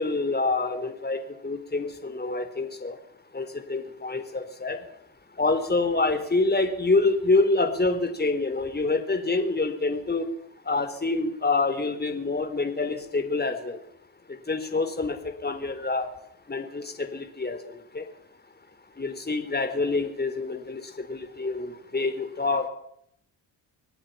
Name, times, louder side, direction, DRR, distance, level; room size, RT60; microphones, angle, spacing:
voice 1, 0.0-2.9 3.3-4.8 5.4-10.3 10.7-13.8 14.5-15.2 15.4-16.1 16.5-17.6 17.9-18.0 19.0-20.8 21.1-22.7, left 3 dB, 20° left, 8 dB, 4.1 m, -26 dB
25.0 x 17.5 x 5.8 m, 0.73 s
supercardioid pair, 75°, 49 cm